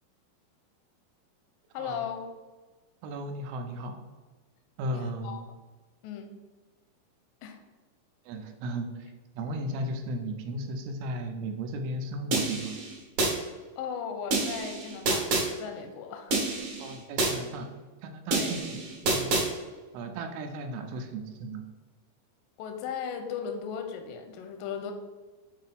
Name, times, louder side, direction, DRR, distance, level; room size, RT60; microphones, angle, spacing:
voice 1, 1.7-2.3 4.9-5.4 6.0-6.3 7.4-7.6 13.8-16.4 18.3-18.6 22.6-24.9, left 7 dB, 80° left, 5 dB, 2.1 m, -37 dB
voice 2, 3.0-4.0 4.8-5.5 8.3-12.8 16.8-17.7 18.0-19.4 19.9-21.7, right 1 dB, 80° right, 5 dB, 2.5 m, -35 dB
sound 1, 12.3-13.3 14.3-15.5 16.3-17.3 18.3-19.5, right 2 dB, 55° right, 2.4 m, -28 dB
6.9 x 2.7 x 5.2 m, 1.3 s
omnidirectional pair, 4.4 m